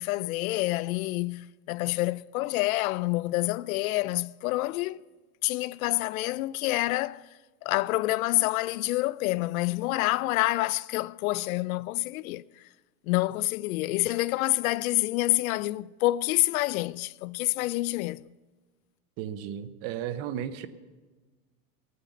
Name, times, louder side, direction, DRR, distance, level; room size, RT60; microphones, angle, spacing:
voice 1, 0.0-5.0 5.4-7.2 7.6-12.6 13.0-18.3, left 18 dB, 65° left, 0.5 m, -27 dB
voice 2, 19.2-20.7, right 10 dB, 30° right, 0.6 m, -34 dB
14.5 x 9.4 x 7.2 m
supercardioid pair, 155°, 45 cm